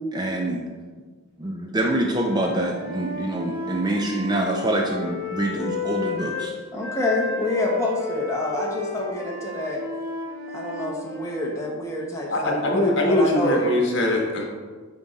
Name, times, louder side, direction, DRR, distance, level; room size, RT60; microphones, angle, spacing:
voice 1, 0.1-0.6 1.4-6.5, right 1 dB, 20° right, 1 dB, 0.5 m, -25 dB
Wind instrument woodwind instrument, 2.1-6.5 6.8-11.6, left 3 dB, 55° right, 1.8 m, -32 dB
voice 2, 6.7-9.8 10.5-13.6, left 1 dB, 15° left, -2 dB, 1.0 m, -27 dB
voice 3, 12.3-14.4, left 1 dB, 55° left, 0 dB, 1.2 m, -21 dB
9.2 x 3.7 x 4.0 m, 1.4 s
head